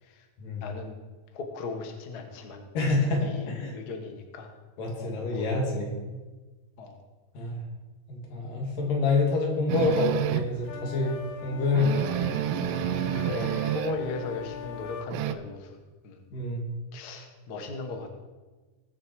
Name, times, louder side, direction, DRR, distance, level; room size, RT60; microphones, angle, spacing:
voice 1, 0.6-1.0 1.3-2.6 3.2-4.5 5.0-5.4 6.8-7.0 13.2-15.8 16.0-16.2 16.9-18.1, left 3 dB, 45° left, 4 dB, 1.3 m, -37 dB
voice 2, 2.7-3.7 4.8-5.9 7.3-7.6 8.1-12.1 16.3-16.6, left 3 dB, 90° left, -1 dB, 4.0 m, -27 dB
sound 1, 9.7-10.6 11.1-11.2 11.5-11.6 11.7-14.1 14.4-15.3, right 10 dB, 85° right, 2.2 m, -29 dB
sound 2, 10.6-15.1, left 6 dB, 75° left, 1.5 m, -41 dB
21.0 x 7.0 x 4.8 m, 1.3 s
omnidirectional pair, 3.7 m